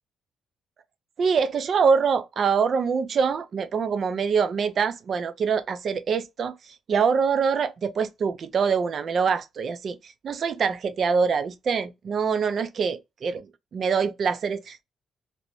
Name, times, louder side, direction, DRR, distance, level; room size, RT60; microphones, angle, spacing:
voice 1, 1.2-14.8, right 6 dB, 55° right, 0.4 m, -25 dB
2.6 x 2.1 x 3.1 m
cardioid pair, 90°, 0 cm